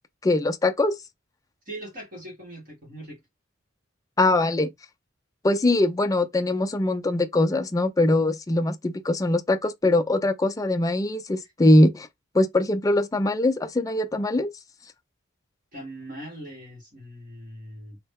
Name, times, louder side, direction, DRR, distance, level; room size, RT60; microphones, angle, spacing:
voice 1, 0.2-0.9 4.2-4.7 5.4-12.1 12.3-14.5, left 1 dB, 15° left, 0.4 m, -22 dB
voice 2, 1.6-3.2 15.7-18.0, right 1 dB, 45° right, 1.5 m, -40 dB
3.1 x 2.1 x 3.4 m
head